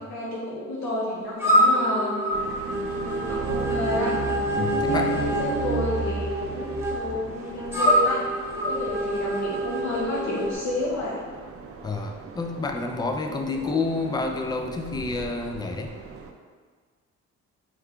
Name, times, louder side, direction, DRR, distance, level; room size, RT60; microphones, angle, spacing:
voice 1, 0.0-2.2 2.9-4.2 4.8-8.2 8.6-11.2 13.4-13.6, left 1 dB, 65° left, -6 dB, 0.9 m, -30 dB
sound 1, 1.4-10.5, equal, 10° right, 1.0 m, -26 dB
sound 2, 2.3-16.3, right 5 dB, 50° right, 0.5 m, -35 dB
voice 2, 4.5-5.3 11.8-15.9, left 3 dB, 15° left, 4 dB, 0.3 m, -29 dB
4.6 x 2.2 x 3.6 m, 1.5 s
cardioid pair, 90°, 30 cm